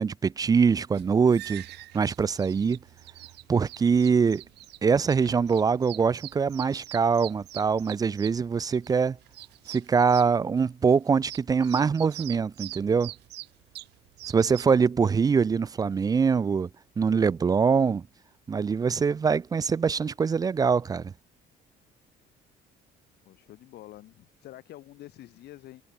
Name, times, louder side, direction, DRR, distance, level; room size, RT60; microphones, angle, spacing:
voice 1, 0.0-1.6 1.9-2.8 3.5-4.4 4.8-9.2 9.7-13.1 14.3-16.7 17.0-18.0 18.5-21.1, right 5 dB, 20° right, 0.3 m, -23 dB
sound 1, 0.9-14.8, right 17 dB, 80° right, 1.4 m, -44 dB
voice 2, 23.2-25.8, left 15 dB, 75° left, 6.8 m, -47 dB
cardioid pair, 110°, 17 cm